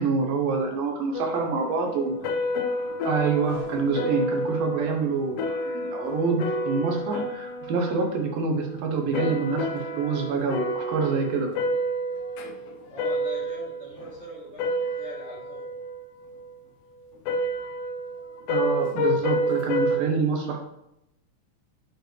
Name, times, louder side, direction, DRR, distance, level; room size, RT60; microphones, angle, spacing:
voice 1, 0.0-2.2 3.0-11.5 18.5-20.6, right 4 dB, 70° right, 3 dB, 1.8 m, -26 dB
sound 1, 1.1-14.1 14.5-16.5 17.3-20.0, equal, 80° left, 1.4 m, -29 dB
sound 2, 3.5-4.5, left 2 dB, 35° left, 1.1 m, -46 dB
voice 2, 12.9-14.7 15.0-15.7, equal, 35° right, -6 dB, 1.1 m, -41 dB
6.7 x 4.4 x 3.2 m, 0.84 s
omnidirectional pair, 3.5 m